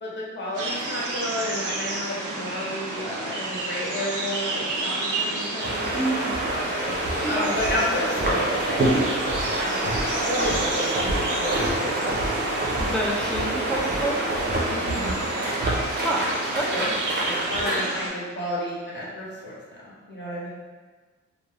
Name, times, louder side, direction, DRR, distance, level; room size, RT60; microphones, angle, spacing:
voice 1, 0.0-6.3 7.3-9.1 9.6-12.1 14.7-15.2 16.7-16.8 17.2-19.5 19.8-20.5, left 1 dB, 40° left, -6 dB, 0.9 m, -31 dB
sound 1, 0.5-18.1, right 2 dB, 85° right, 0.6 m, -31 dB
sound 2, 5.6-17.8, right 1 dB, 35° right, 0.6 m, -27 dB
voice 2, 5.9-6.3 7.2-7.4 8.8-9.1 12.8-14.4 16.0-16.3 16.5-16.9, right 1 dB, 5° left, -3 dB, 0.4 m, -28 dB
2.6 x 2.2 x 3.2 m, 1.4 s
wide cardioid pair, 100°, 30 cm